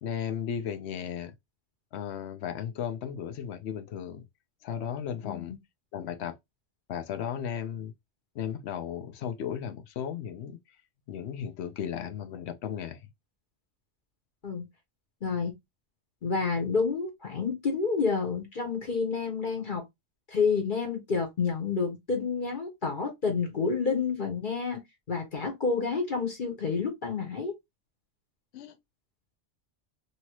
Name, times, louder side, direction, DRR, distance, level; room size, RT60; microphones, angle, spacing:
voice 1, 0.0-1.3 1.9-4.2 4.6-5.5 5.9-6.4 6.9-7.9 8.3-10.6 11.1-13.0 28.5-28.8, left 8 dB, 70° left, 0.8 m, -35 dB
voice 2, 5.2-5.6 14.4-14.7 15.2-15.5 16.2-19.8 20.3-24.8 25.1-27.5, left 5 dB, 45° left, 1.1 m, -29 dB
2.9 x 2.7 x 2.9 m
omnidirectional pair, 1.2 m